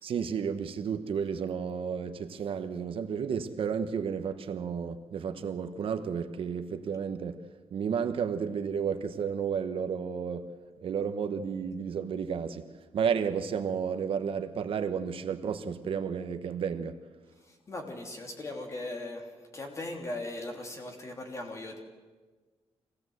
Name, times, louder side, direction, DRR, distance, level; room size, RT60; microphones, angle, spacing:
voice 1, 0.0-7.4 7.7-10.5 10.8-17.0, right 7 dB, 60° right, 1.1 m, -32 dB
voice 2, 17.4-21.8, left 2 dB, 30° left, 3.1 m, -39 dB
25.0 x 17.0 x 8.0 m
wide cardioid pair, 160°, 11 cm